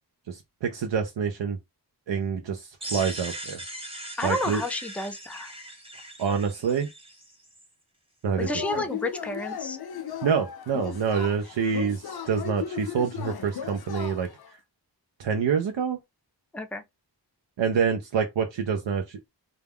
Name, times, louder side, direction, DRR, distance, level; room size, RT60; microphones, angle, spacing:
voice 1, 0.3-1.6 2.1-3.6 4.2-4.6 6.2-6.9 8.2-8.6 10.2-14.3 15.2-16.0 17.6-19.3, right 6 dB, 85° right, 0.5 m, -27 dB
sound 1, 2.8-7.7, right 1 dB, 15° right, 0.8 m, -40 dB
voice 2, 4.2-5.5 8.4-9.8 16.5-16.8, left 2 dB, 5° left, 0.3 m, -31 dB
Yell / Cheering, 8.4-14.5, left 8 dB, 60° left, 0.5 m, -36 dB
2.3 x 2.2 x 3.3 m
wide cardioid pair, 50°, 43 cm